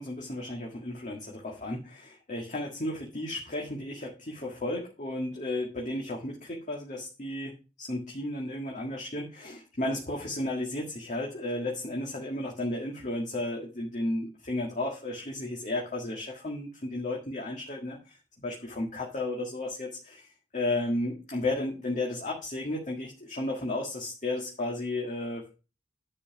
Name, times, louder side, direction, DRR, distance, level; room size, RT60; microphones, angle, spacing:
voice 1, 0.0-20.3 20.5-25.5, left 2 dB, 45° left, -1 dB, 1.8 m, -33 dB
10.5 x 5.5 x 5.1 m, 0.32 s
head